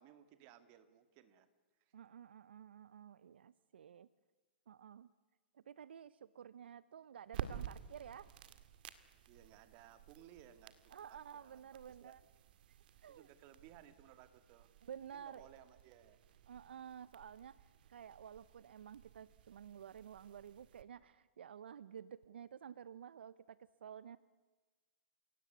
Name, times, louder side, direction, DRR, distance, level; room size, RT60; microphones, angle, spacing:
voice 1, 0.0-1.5 1.8-1.9 9.3-11.6 12.0-12.1 13.1-14.7 15.1-16.2, right 11 dB, 40° right, 11 dB, 2.3 m, -61 dB
voice 2, 1.9-4.1 4.7-5.1 5.5-8.3 10.9-12.2 12.7-12.8 13.0-13.3 14.8-15.5 16.5-24.2, right 8 dB, 80° right, 17 dB, 0.7 m, -52 dB
sound 1, 7.3-20.8, right 10 dB, 60° right, 1.9 m, -53 dB
30.0 x 17.5 x 9.5 m, 1.3 s
hypercardioid pair, 135°, 6 cm